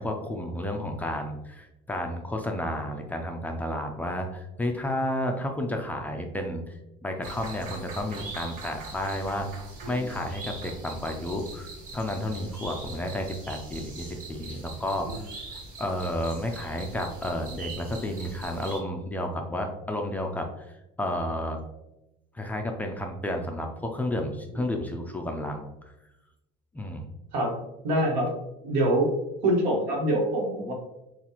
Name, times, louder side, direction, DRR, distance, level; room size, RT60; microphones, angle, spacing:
voice 1, 0.0-9.6 9.9-15.2 15.5-20.7 21.0-21.6 22.3-25.9 26.7-27.0, left 1 dB, 10° left, 2 dB, 0.3 m, -31 dB
sound 1, 7.2-18.8, right 3 dB, 45° right, 1.1 m, -42 dB
voice 2, 27.8-28.3 28.6-29.1 29.4-30.7, right 1 dB, 75° right, 0 dB, 1.4 m, -25 dB
7.0 x 2.4 x 2.9 m, 0.93 s
cardioid pair, 165°, 18 cm